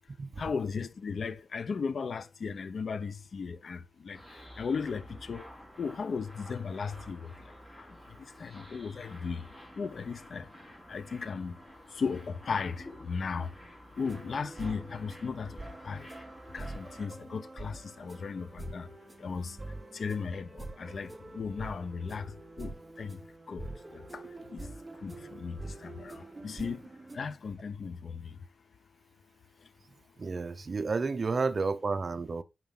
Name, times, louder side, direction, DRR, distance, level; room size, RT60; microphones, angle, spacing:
voice 1, 0.4-3.8 4.0-4.2 4.6-5.5 5.8-7.2 8.4-9.4 9.8-10.4 10.9-11.5 12.0-13.5 14.0-15.5 15.8-16.1 16.5-18.9 19.2-19.5 19.9-21.1 21.3-22.3 22.6-22.7 23.0-23.2 23.5-23.6 24.1-24.2 24.5-24.6 25.0-26.1 26.4-26.8 27.1-28.3, left 5 dB, 65° left, 0.8 m, -36 dB
sound 1, 4.1-17.1, equal, 10° left, 4.4 m, -51 dB
sound 2, 14.0-27.2, right 2 dB, 20° right, 1.1 m, -45 dB
voice 2, 30.2-32.4, right 4 dB, 45° right, 0.7 m, -31 dB
9.4 x 5.8 x 3.8 m
wide cardioid pair, 130°, 0 cm